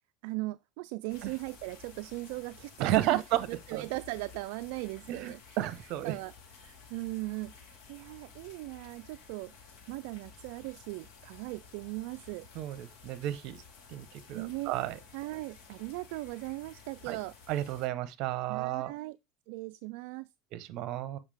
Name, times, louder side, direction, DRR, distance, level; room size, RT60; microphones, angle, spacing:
voice 1, 0.2-3.2 3.5-5.6 6.0-6.3 6.6-9.5 9.9-12.5 14.3-14.7 15.1-17.3 18.5-19.2 19.5-20.3, right 21 dB, 75° right, 0.3 m, -38 dB
sound 1, 1.1-17.9, left 5 dB, 65° left, 2.3 m, -54 dB
voice 2, 2.8-3.8 5.1-6.2 12.5-13.6 13.9-15.0 17.1-17.2 17.5-18.9 20.5-21.2, right 14 dB, 60° right, 0.9 m, -32 dB
7.2 x 5.4 x 3.4 m
supercardioid pair, 125°, 0 cm